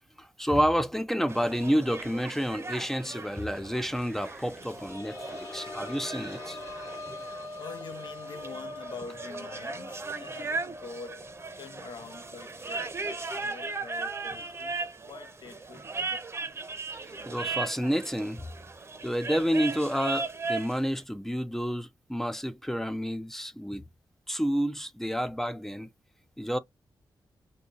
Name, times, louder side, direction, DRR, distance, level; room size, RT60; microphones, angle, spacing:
voice 1, 0.2-6.6 17.3-18.4 19.0-23.9 24.3-25.9 26.4-26.6, equal, 5° left, 0.4 m, -29 dB
sound 1, 1.3-20.8, right 3 dB, 30° right, 0.7 m, -38 dB
sound 2, 4.3-15.7 16.1-16.2 17.7-17.8, left 2 dB, 40° left, 1.2 m, -45 dB
voice 2, 7.5-11.3 11.6-14.8 15.1-16.2, left 5 dB, 70° left, 0.6 m, -45 dB
2.8 x 2.7 x 3.7 m
wide cardioid pair, 105°, 8 cm